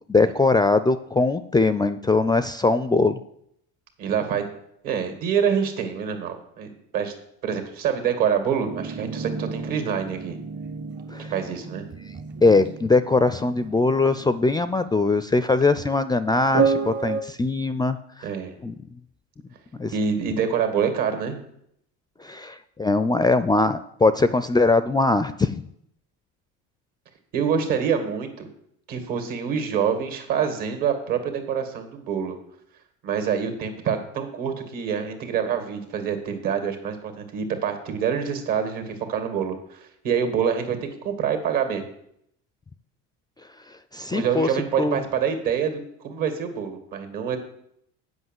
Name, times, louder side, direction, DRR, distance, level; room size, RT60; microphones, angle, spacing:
voice 1, 0.1-3.2 11.1-11.3 12.4-18.0 18.6-18.7 19.8-19.9 22.2-25.6 43.9-44.5 44.8-45.0, left 3 dB, 10° left, 12 dB, 0.4 m, -21 dB
voice 2, 4.0-4.5 4.8-7.1 7.4-10.4 11.3-11.8 18.2-18.5 19.9-21.4 27.3-28.5 28.9-32.4 33.0-41.8 44.1-47.4, right 7 dB, 65° right, 6 dB, 2.2 m, -26 dB
sound 1, 8.6-14.9 16.5-17.2, right 5 dB, 30° right, 0.8 m, -30 dB
8.0 x 5.5 x 7.6 m, 0.73 s
supercardioid pair, 90°, 35 cm